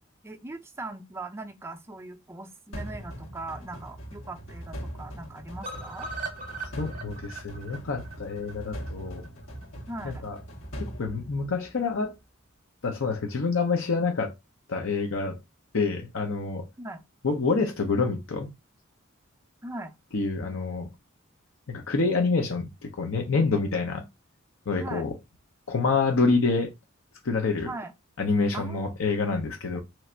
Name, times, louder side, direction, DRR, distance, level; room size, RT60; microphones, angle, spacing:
voice 1, 0.2-6.1 9.9-10.2 16.8-17.0 19.6-19.9 24.8-25.1 27.6-27.9 28.5-28.9, right 2 dB, 15° right, 0.4 m, -39 dB
sound 1, 2.7-11.9, equal, 90° left, 1.5 m, -41 dB
sound 2, 5.6-9.6 10.0-10.1 10.4-10.5 10.8-10.9, right 3 dB, 45° right, 0.8 m, -40 dB
voice 2, 6.8-9.2 10.0-10.4 10.8-12.1 12.8-14.3 14.7-15.4 15.7-16.7 17.2-18.5 20.1-20.9 21.7-24.0 24.7-25.1 25.7-26.7 27.2-27.7 28.2-29.8, left 4 dB, 70° left, 0.7 m, -27 dB
3.1 x 2.5 x 4.3 m
head